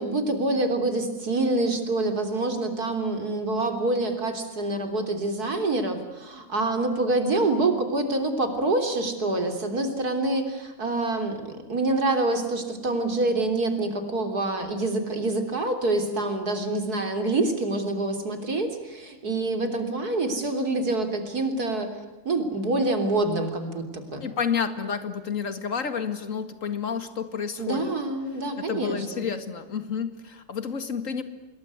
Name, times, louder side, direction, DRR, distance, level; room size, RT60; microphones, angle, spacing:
voice 1, 0.0-21.9 22.3-24.3 27.6-29.3, right 2 dB, 50° right, 6 dB, 3.9 m, -26 dB
voice 2, 24.2-27.9 28.6-31.2, left 6 dB, 45° left, 10 dB, 2.3 m, -30 dB
27.0 x 21.0 x 9.5 m, 1.1 s
omnidirectional pair, 2.1 m